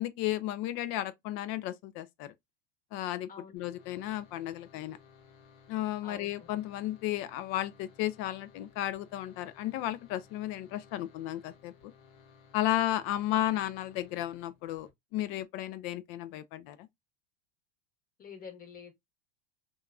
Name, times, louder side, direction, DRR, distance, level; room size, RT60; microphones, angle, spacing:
voice 1, 0.0-2.3 2.9-5.0 5.7-11.7 12.5-16.9, left 13 dB, 45° left, 0.4 m, -34 dB
sound 1, 3.6-14.9, left 6 dB, 60° left, 1.0 m, -59 dB
voice 2, 6.0-6.5 18.2-18.9, left 6 dB, 30° left, 1.0 m, -48 dB
2.8 x 2.3 x 2.3 m
hypercardioid pair, 95°, 29 cm